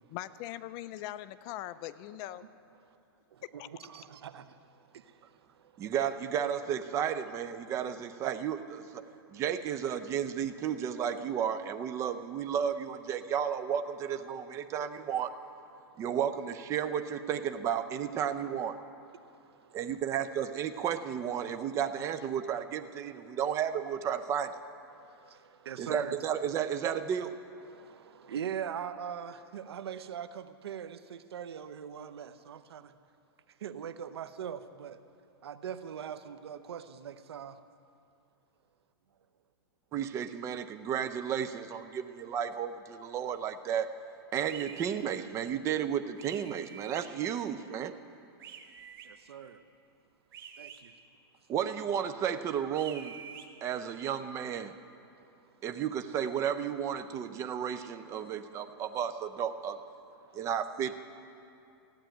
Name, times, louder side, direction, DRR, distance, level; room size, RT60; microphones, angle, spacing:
voice 1, 0.1-2.4 3.4-3.7, left 14 dB, 30° left, 15 dB, 0.3 m, -41 dB
voice 2, 3.3-5.9 9.1-9.4 15.8-16.0 19.1-19.8 23.0-23.4 24.9-26.2 27.6-32.9 33.6-35.0 35.4-37.6 49.0-49.6 50.6-50.9 55.1-55.6 58.2-58.4 58.7-58.8 60.2-60.5, right 8 dB, 85° right, 12 dB, 0.8 m, -42 dB
voice 3, 5.8-9.0 9.3-15.3 16.0-18.7 19.7-24.5 25.8-27.3 39.9-43.9 44.3-47.9 51.5-53.2 53.6-54.7 55.6-59.8 60.3-61.0, right 8 dB, 20° right, 9 dB, 0.6 m, -33 dB
sound 1, 44.4-44.9 46.2-47.0 48.4-49.1 50.3-50.8 52.7-53.5, right 8 dB, 60° right, 1.5 m, -47 dB
15.5 x 8.8 x 9.1 m, 2.6 s
hypercardioid pair, 150°, 13 cm